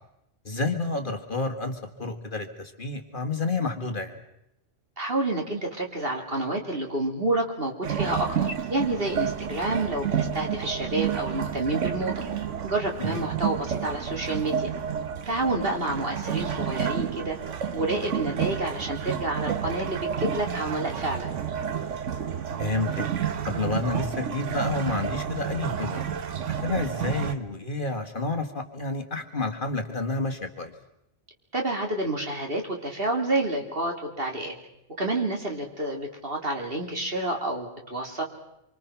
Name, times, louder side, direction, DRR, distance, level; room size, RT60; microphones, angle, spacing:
voice 1, 0.5-4.2 13.0-13.2 22.6-23.1 23.5-26.1 26.6-30.7, left 3 dB, 45° left, 6 dB, 1.9 m, -30 dB
voice 2, 5.0-12.2 12.6-14.7 15.3-17.4 17.7-21.3 31.5-34.5 35.0-38.2, right 2 dB, 50° right, 2 dB, 3.3 m, -29 dB
sound 1, 7.8-27.3, right 8 dB, 85° right, 1.4 m, -30 dB
26.0 x 25.0 x 5.9 m, 0.83 s
omnidirectional pair, 1.2 m